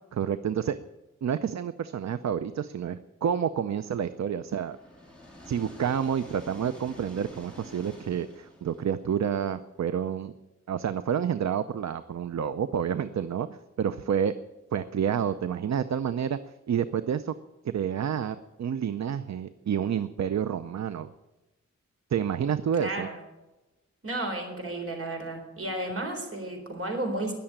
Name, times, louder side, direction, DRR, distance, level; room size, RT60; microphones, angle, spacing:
voice 1, 0.1-0.8 1.2-4.8 5.5-10.3 10.7-14.3 14.7-16.4 16.7-17.3 17.6-21.1 22.1-23.1, right 8 dB, 70° right, 12 dB, 0.6 m, -29 dB
sound 1, 3.9-9.8, left 1 dB, 5° left, 4.2 m, -49 dB
voice 2, 22.8-23.2 24.0-27.3, right 1 dB, 50° right, 3 dB, 4.0 m, -33 dB
20.5 x 6.9 x 8.9 m, 1.1 s
wide cardioid pair, 145°, 29 cm